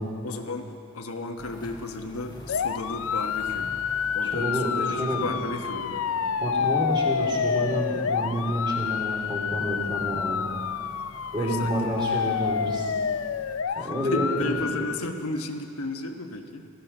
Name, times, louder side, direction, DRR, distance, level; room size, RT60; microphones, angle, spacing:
voice 1, 0.2-3.8 4.1-6.2 11.4-12.4 13.7-16.7, left 2 dB, 90° left, 4 dB, 1.2 m, -34 dB
sound 1, 1.4-13.6, left 1 dB, 20° left, 1.2 m, -48 dB
sound 2, 2.5-14.9, left 7 dB, 70° left, 0.5 m, -28 dB
voice 2, 4.2-5.3 6.4-10.5 11.3-12.9 13.8-14.9, right 1 dB, 20° right, -3 dB, 2.8 m, -29 dB
18.0 x 14.5 x 5.5 m, 2.5 s
head